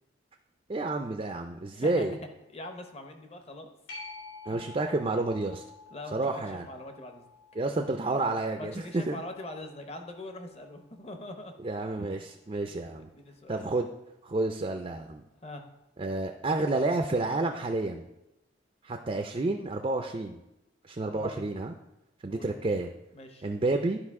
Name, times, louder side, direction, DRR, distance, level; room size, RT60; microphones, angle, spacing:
voice 1, 0.7-2.2 4.5-5.6 6.1-6.7 7.6-9.2 11.6-13.1 13.5-13.9 14.2-15.2 16.0-18.1 18.8-20.4 20.8-21.7 22.2-22.9 23.4-24.0, right 2 dB, 30° right, 4 dB, 0.4 m, -30 dB
voice 2, 1.7-2.1 2.5-3.7 4.5-4.7 5.9-6.2 6.6-7.2 8.6-11.5 12.0-12.3 12.6-13.7 15.4-15.6 21.1-21.5 22.3-22.7 23.1-23.5, left 1 dB, 30° left, 5 dB, 0.7 m, -43 dB
sound 1, 3.9-11.0 16.6-16.7, left 3 dB, 80° left, 3.4 m, -50 dB
11.5 x 5.0 x 3.6 m, 0.92 s
head